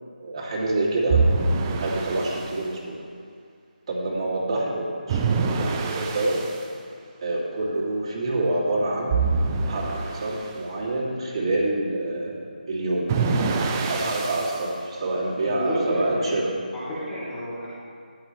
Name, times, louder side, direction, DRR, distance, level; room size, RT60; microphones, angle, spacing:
voice 1, 0.2-1.2 1.7-3.0 3.9-6.4 7.2-9.1 9.7-13.1 13.9-16.5, right 2 dB, 40° right, -5 dB, 2.7 m, -27 dB
sound 1, 1.1-2.5 5.1-6.6 9.1-10.5 13.1-14.7, right 4 dB, 20° right, 0.7 m, -25 dB
voice 2, 15.4-16.3 16.7-17.7, equal, 10° left, -11 dB, 2.8 m, -29 dB
13.5 x 10.5 x 3.2 m, 2.2 s
figure-of-eight pair, 160°, 5 cm